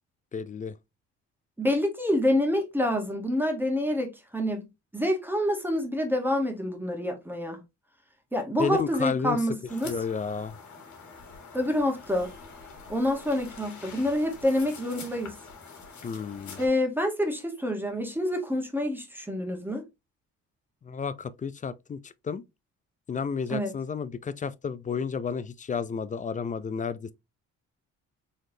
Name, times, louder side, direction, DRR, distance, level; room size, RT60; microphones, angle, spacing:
voice 1, 0.3-0.7 8.6-9.4 9.8-10.6 16.0-16.6 20.8-22.4 23.1-27.1, left 6 dB, 25° left, 0.4 m, -32 dB
voice 2, 1.6-4.7 4.9-7.6 8.3-9.9 11.5-12.3 12.9-15.3 16.6-19.8 23.5-23.7, left 1 dB, 5° right, 1.1 m, -27 dB
sound 1, 9.7-16.7, left 4 dB, 70° left, 1.6 m, -46 dB
4.0 x 3.2 x 2.7 m
cardioid pair, 90°, 30 cm